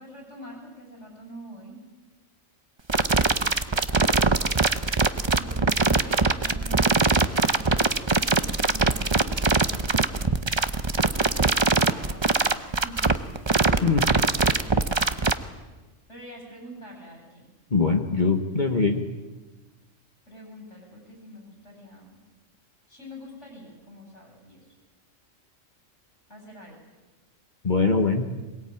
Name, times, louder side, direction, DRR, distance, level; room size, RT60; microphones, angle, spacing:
voice 1, 0.0-1.8 5.3-10.4 11.2-13.2 14.3-14.8 16.1-17.5 20.3-22.2 22.9-24.7 26.3-26.9, right 1 dB, 65° left, 0 dB, 8.2 m, -45 dB
sound 1, 2.9-15.3, right 3 dB, 25° right, 0.8 m, -22 dB
voice 2, 17.7-19.1 27.6-28.3, left 4 dB, 35° left, 4 dB, 1.5 m, -22 dB
22.5 x 22.0 x 8.9 m, 1.2 s
omnidirectional pair, 1.3 m